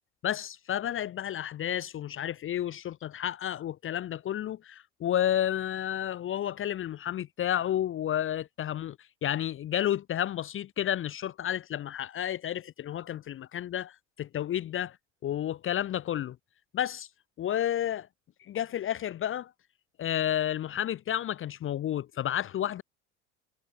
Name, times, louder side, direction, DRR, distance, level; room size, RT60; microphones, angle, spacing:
voice 1, 0.2-9.0 9.2-15.0 15.2-16.4 16.7-17.1 17.4-18.1 18.5-19.5 20.0-22.8, left 11 dB, 35° left, 0.7 m, -31 dB
hypercardioid pair, 65°, 36 cm